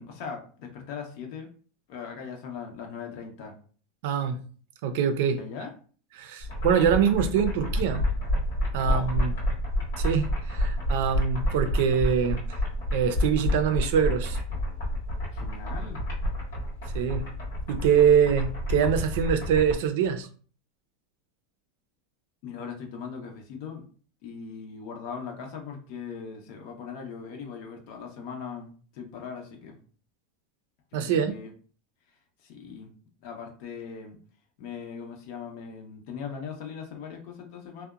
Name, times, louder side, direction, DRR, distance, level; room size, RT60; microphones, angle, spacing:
voice 1, 0.0-1.5 1.9-3.6 5.3-5.7 8.9-9.1 15.3-16.0 22.4-23.8 24.2-29.8 30.9-31.5 32.4-32.9 33.2-34.2 34.6-37.9, left 6 dB, 60° left, 2 dB, 0.7 m, -39 dB
voice 2, 4.0-4.4 4.8-5.4 6.2-8.0 8.7-9.3 10.0-12.4 12.9-14.4 16.9-17.3 17.7-20.3 30.9-31.3, right 7 dB, 70° right, 8 dB, 0.4 m, -24 dB
sound 1, 6.4-19.8, left 1 dB, 80° left, 1.0 m, -29 dB
2.7 x 2.1 x 2.3 m, 0.41 s
supercardioid pair, 135°, 0 cm